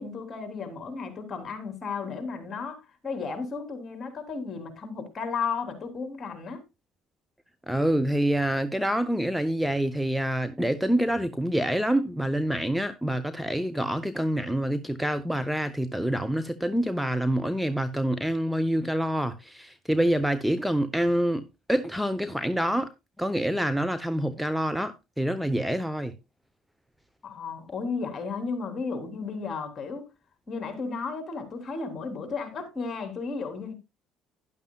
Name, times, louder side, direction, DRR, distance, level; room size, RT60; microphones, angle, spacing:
voice 1, 0.0-6.6 27.2-30.1 30.5-33.7, left 4 dB, 40° left, 3.6 m, -34 dB
voice 2, 7.7-22.9 23.2-26.1, right 1 dB, ahead, 0.9 m, -26 dB
12.0 x 11.0 x 2.4 m
supercardioid pair, 75°, 0 cm